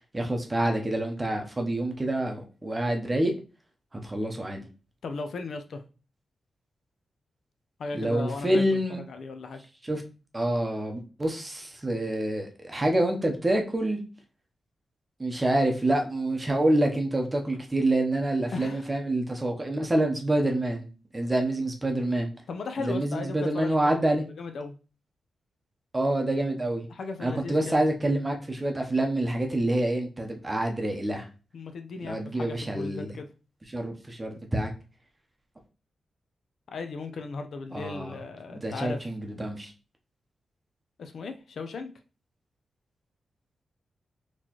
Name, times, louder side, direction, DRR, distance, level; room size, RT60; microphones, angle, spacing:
voice 1, 0.1-3.3 4.0-4.6 7.9-9.0 9.9-10.0 10.3-14.0 15.2-20.9 21.1-22.3 22.8-24.2 25.9-26.9 27.2-31.3 32.0-33.1 33.7-34.7 37.7-38.1 38.5-39.7, right 1 dB, 20° right, 0.7 m, -27 dB
voice 2, 5.0-5.8 7.8-9.6 18.5-18.9 22.5-23.9 24.4-24.8 26.9-27.8 31.5-33.3 36.7-39.0 41.0-41.9, left 4 dB, 65° left, 0.5 m, -36 dB
4.2 x 3.0 x 2.9 m
wide cardioid pair, 135°, 0 cm